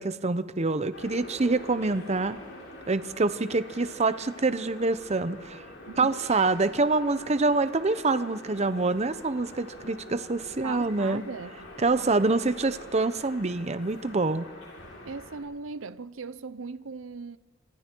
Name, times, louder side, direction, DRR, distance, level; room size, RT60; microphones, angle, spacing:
voice 1, 0.0-2.4 2.9-5.6 6.0-11.2 11.8-14.5, right 3 dB, 35° right, 0.8 m, -26 dB
British Museum radio voice, 0.9-15.4, left 1 dB, 75° left, 7.4 m, -45 dB
voice 2, 10.6-12.1 15.0-17.4, right 4 dB, 85° right, 0.7 m, -39 dB
26.5 x 26.0 x 4.6 m
head